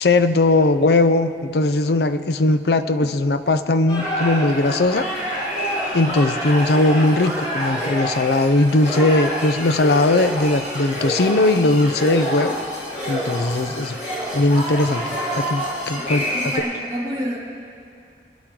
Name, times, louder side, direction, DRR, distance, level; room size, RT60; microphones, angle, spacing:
voice 1, 0.0-5.1 5.9-12.6 13.1-14.0 14.3-16.2, left 2 dB, 60° left, 10 dB, 0.6 m, -19 dB
sound 1, 3.9-16.6, equal, 45° left, 4.5 m, -27 dB
voice 2, 16.0-17.4, equal, 20° right, -8 dB, 2.7 m, -29 dB
28.5 x 11.0 x 3.8 m, 2.4 s
head